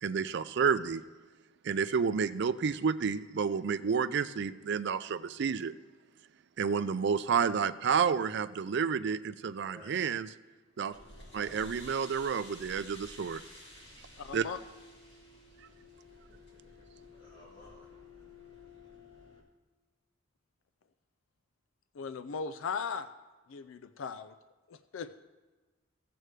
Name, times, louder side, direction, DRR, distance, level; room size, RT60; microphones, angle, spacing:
voice 1, 0.0-1.0 1.6-5.7 6.6-10.3 10.8-10.9 11.3-13.4 14.3-14.5, right 6 dB, 60° right, 13 dB, 0.4 m, -30 dB
sound 1, 10.9-19.4, left 2 dB, 60° left, 2.5 m, -52 dB
voice 2, 14.2-14.6 21.9-23.1 23.5-24.3 24.7-25.1, left 5 dB, 85° left, 12 dB, 0.4 m, -38 dB
voice 3, 16.1-16.7 17.2-17.9 25.0-25.1, left 1 dB, 45° left, -8 dB, 2.7 m, -56 dB
15.5 x 7.8 x 3.2 m, 1.2 s
head